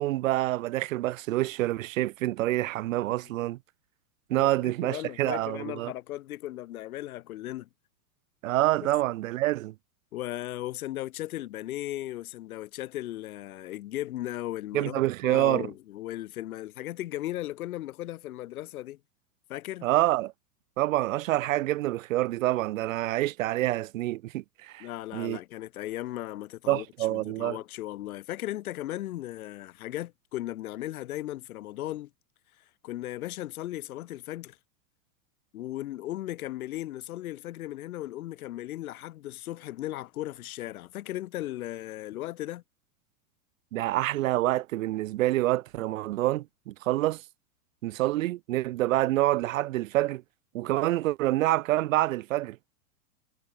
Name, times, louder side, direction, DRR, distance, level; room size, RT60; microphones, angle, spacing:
voice 1, 0.0-3.6 4.3-5.9 8.4-9.7 14.7-15.7 19.8-20.3 20.8-24.9 25.1-25.4 26.7-27.6 43.7-47.2 47.8-50.2 50.5-52.6, right 16 dB, 55° right, 0.7 m, -27 dB
voice 2, 4.3-7.7 8.8-8.9 10.1-19.0 19.5-19.9 24.8-32.1 32.8-34.6 35.5-42.6, left 15 dB, 60° left, 2.9 m, -37 dB
supercardioid pair, 165°, 48 cm